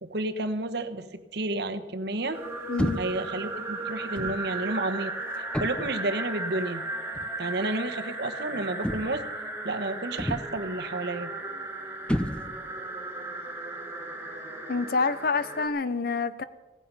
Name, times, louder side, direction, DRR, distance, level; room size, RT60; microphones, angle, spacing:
voice 1, 0.0-2.4 3.0-5.1 5.6-6.8 7.4-9.2 9.6-11.3, right 2 dB, 60° right, 8 dB, 1.2 m, -31 dB
sound 1, 2.3-15.7, right 2 dB, 10° right, 2.0 m, -36 dB
voice 2, 2.7-3.0 14.7-16.4, left 4 dB, 55° left, 14 dB, 0.8 m, -27 dB
sound 2, 2.8-3.3 4.2-4.5 5.5-6.0 7.1-7.4 8.8-9.3 10.2-10.7 12.1-12.8, equal, 5° left, 0.6 m, -31 dB
17.0 x 15.0 x 5.5 m, 1.2 s
head